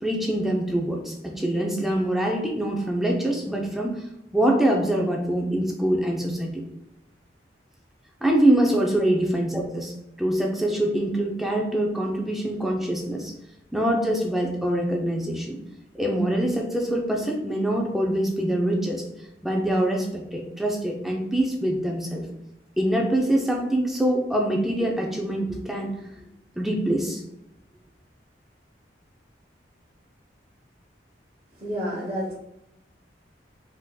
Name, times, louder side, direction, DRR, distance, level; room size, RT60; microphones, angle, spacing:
voice 1, 0.0-4.0 4.3-6.6 8.2-13.3 13.7-15.6 15.9-19.0 19.4-22.3 22.8-25.9 26.6-27.2, right 1 dB, ahead, -1 dB, 0.3 m, -24 dB
voice 2, 31.5-32.3, equal, 35° right, -7 dB, 0.9 m, -30 dB
3.5 x 2.7 x 2.2 m, 0.85 s
head